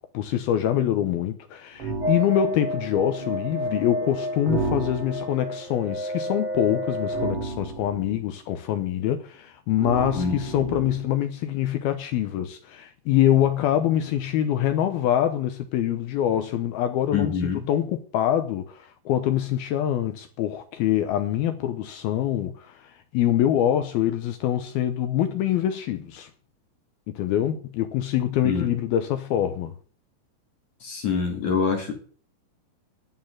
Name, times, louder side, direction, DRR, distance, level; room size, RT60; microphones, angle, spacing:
voice 1, 0.1-26.3 27.1-29.7, left 11 dB, 75° left, 2.3 m, -25 dB
sound 1, 1.8-2.2 4.5-5.4 7.1-8.2 9.8-11.2, right 3 dB, 50° right, 1.8 m, -31 dB
sound 2, 2.0-7.3, equal, 10° right, 2.9 m, -30 dB
voice 2, 17.1-17.6 28.4-28.7 30.8-31.9, left 5 dB, 45° left, 3.1 m, -25 dB
11.0 x 7.5 x 8.8 m
omnidirectional pair, 5.4 m